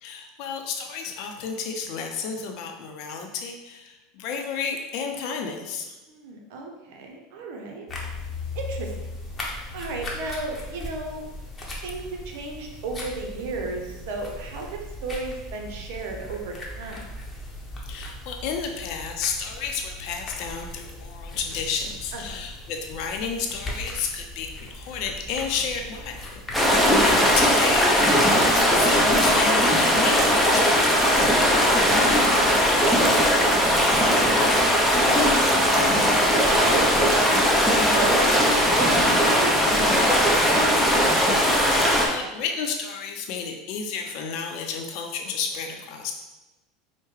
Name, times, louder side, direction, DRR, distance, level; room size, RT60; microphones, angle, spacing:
voice 1, 0.0-5.9 17.9-31.3 35.8-36.4 41.6-46.1, left 6 dB, 60° left, 3 dB, 0.6 m, -32 dB
voice 2, 6.1-7.9 8.5-9.1 9.7-11.3 11.8-17.1 22.1-22.5 26.7-27.1 31.5-35.7 36.3-40.1 40.5-40.7, right 3 dB, 70° right, 2 dB, 0.7 m, -34 dB
sound 1, 7.9-27.5, left 2 dB, 20° left, 0.9 m, -38 dB
sound 2, 26.5-42.1, equal, ahead, 0.7 m, -19 dB
4.7 x 2.1 x 3.2 m, 1.1 s
hypercardioid pair, 100°, 0 cm